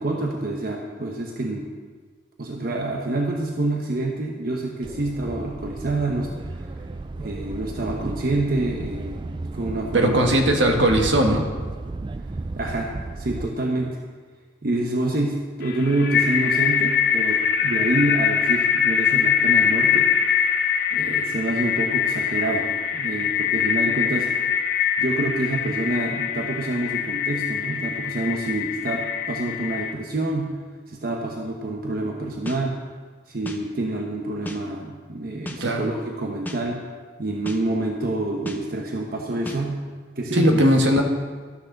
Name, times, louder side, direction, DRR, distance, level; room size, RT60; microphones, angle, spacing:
voice 1, 0.0-1.7 2.4-6.7 7.2-10.4 12.6-12.9 13.2-14.0 14.6-20.1 20.9-24.3 24.6-24.7 25.0-30.6 30.9-32.8 33.3-36.8 37.2-39.8 40.2-41.0, right 2 dB, 50° right, 0 dB, 1.0 m, -27 dB
sound 1, 4.8-13.5, right 2 dB, 25° right, 0.3 m, -34 dB
voice 2, 9.9-11.4 35.6-35.9 40.3-41.0, right 1 dB, 70° right, 3 dB, 1.5 m, -19 dB
sound 2, 15.6-29.9, left 7 dB, 55° left, 0.9 m, -23 dB
sound 3, 32.5-32.6 33.4-33.6 34.4-34.6 35.5-35.6 36.4-36.6 37.4-37.6 38.5-38.6 39.4-39.6, left 1 dB, 10° left, 0.8 m, -33 dB
13.0 x 6.4 x 6.5 m, 1.5 s
head